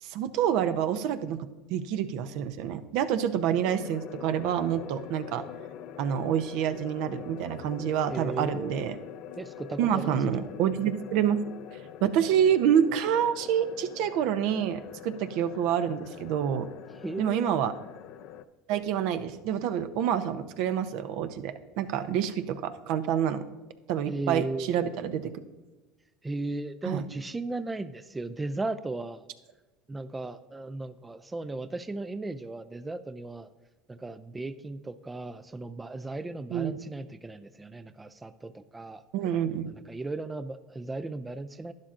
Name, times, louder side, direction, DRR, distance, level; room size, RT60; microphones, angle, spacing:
voice 1, 0.0-5.4 6.0-9.0 9.8-11.4 12.0-16.7 17.2-17.7 18.7-23.5 23.9-25.3 26.8-27.0 36.5-36.8 39.1-39.7, right 9 dB, 65° right, 11 dB, 0.6 m, -27 dB
sound 1, 3.6-18.4, left 9 dB, 60° left, 0.4 m, -44 dB
voice 2, 8.1-8.8 9.4-10.5 17.0-17.6 24.1-24.8 26.2-29.2 29.9-33.5 33.9-39.0 39.9-41.7, right 2 dB, 15° right, 11 dB, 0.3 m, -36 dB
11.5 x 10.5 x 2.5 m, 1.2 s
supercardioid pair, 105°, 0 cm